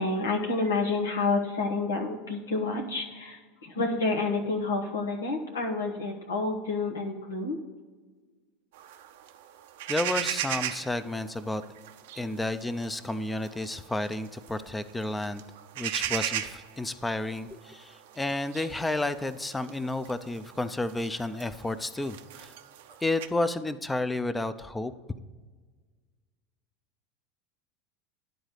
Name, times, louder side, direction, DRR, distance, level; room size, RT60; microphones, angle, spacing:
voice 1, 0.0-7.6, left 3 dB, 90° left, 1 dB, 1.1 m, -29 dB
sound 1, 8.7-23.3, right 11 dB, 70° right, 0.5 m, -38 dB
voice 2, 9.9-11.6 12.1-15.4 15.8-22.5 23.0-24.9, left 2 dB, 10° left, 12 dB, 0.5 m, -31 dB
10.5 x 3.9 x 6.5 m, 1.4 s
hypercardioid pair, 85°, 0 cm